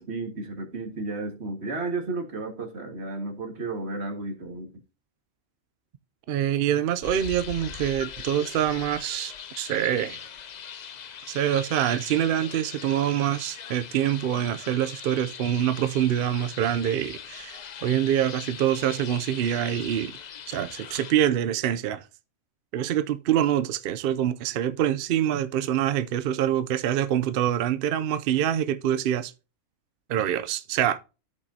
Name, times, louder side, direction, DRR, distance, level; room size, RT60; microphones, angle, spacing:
voice 1, 0.1-4.7, right 3 dB, 50° right, 1.9 m, -33 dB
voice 2, 6.3-10.2 11.3-20.1 20.5-22.0 22.7-29.3 30.1-31.0, right 10 dB, 70° right, 0.5 m, -25 dB
sound 1, 7.0-21.1, left 8 dB, 70° left, 0.4 m, -41 dB
13.5 x 5.4 x 2.7 m
omnidirectional pair, 1.4 m